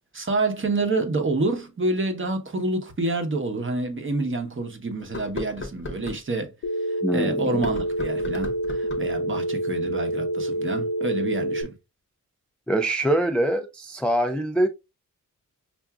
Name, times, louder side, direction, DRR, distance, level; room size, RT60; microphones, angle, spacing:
voice 1, 0.1-6.5 6.9-11.7, right 2 dB, 35° right, 0.9 m, -28 dB
sound 1, 3.0-3.1 3.7-3.8 5.0-6.2 7.5-9.2, left 2 dB, 35° left, 0.8 m, -36 dB
Telephone, 6.6-11.6, right 1 dB, 70° left, 0.7 m, -27 dB
voice 2, 7.0-7.6 12.7-14.7, right 1 dB, 5° left, 0.3 m, -24 dB
5.6 x 2.5 x 2.3 m
wide cardioid pair, 100°, 35 cm